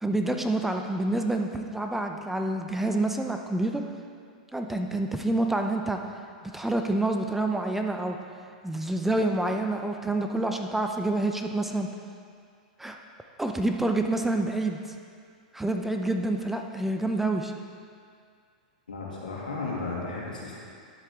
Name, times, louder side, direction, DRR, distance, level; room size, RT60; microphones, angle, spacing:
voice 1, 0.0-3.8 4.5-6.0 6.5-8.2 8.6-11.9 12.8-13.0 13.4-14.8 15.5-17.5, right 2 dB, 5° right, 4 dB, 0.6 m, -27 dB
voice 2, 18.9-20.6, left 3 dB, 90° left, -4 dB, 2.2 m, -34 dB
10.5 x 7.6 x 3.6 m, 2.2 s
hypercardioid pair, 105°, 4 cm